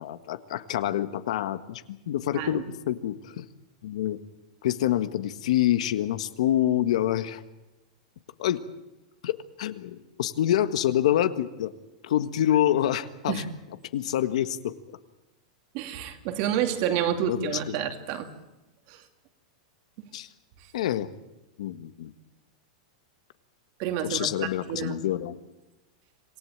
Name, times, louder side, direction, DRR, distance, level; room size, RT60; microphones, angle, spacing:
voice 1, 0.0-3.5 3.8-4.2 4.6-7.4 8.4-8.6 9.2-11.7 12.0-13.4 13.9-14.7 17.3-17.7 20.1-20.3 20.7-21.1 21.6-22.1 24.1-25.4, left 12 dB, 70° left, 12 dB, 1.6 m, -27 dB
voice 2, 15.7-18.3 18.9-19.1 20.6-20.7 23.8-25.0, right 10 dB, 40° right, 7 dB, 2.6 m, -29 dB
26.5 x 17.5 x 8.9 m, 0.98 s
supercardioid pair, 165°, 4 cm